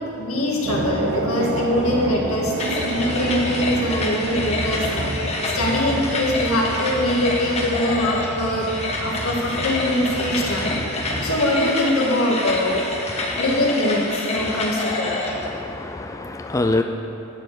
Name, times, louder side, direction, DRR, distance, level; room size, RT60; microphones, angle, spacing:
voice 1, 0.2-2.5 2.8-8.7 9.0-10.8 11.2-12.8 13.3-15.1, left 1 dB, 85° left, -2 dB, 1.9 m, -23 dB
sound 1, 0.6-11.4, right 1 dB, 60° right, 0.8 m, -29 dB
sound 2, 2.6-15.5, left 2 dB, 30° left, 1.3 m, -28 dB
voice 2, 15.5-16.8, left 2 dB, 15° left, 5 dB, 0.3 m, -26 dB
11.0 x 4.8 x 7.9 m, 2.7 s
head